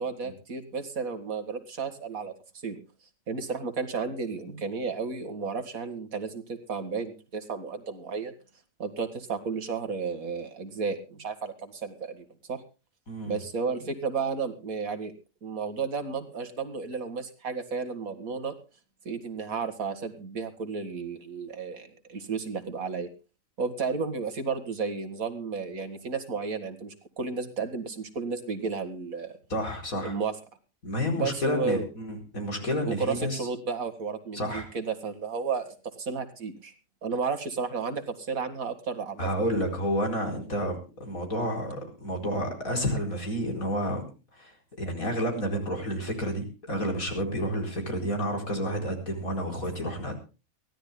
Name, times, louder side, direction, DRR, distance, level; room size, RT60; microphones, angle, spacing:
voice 1, 0.0-2.3 2.6-2.8 3.3-8.3 8.8-12.6 13.3-15.1 15.4-18.5 19.1-23.1 23.6-29.3 30.0-30.4 31.2-31.9 32.9-36.7 37.0-39.3, right 5 dB, 85° right, 7 dB, 2.4 m, -33 dB
voice 2, 13.1-13.4 29.5-30.1 30.8-33.4 34.3-34.6 39.2-44.0 44.4-50.2, equal, 90° left, 3 dB, 5.0 m, -30 dB
23.0 x 16.0 x 2.2 m, 0.32 s
omnidirectional pair, 1.4 m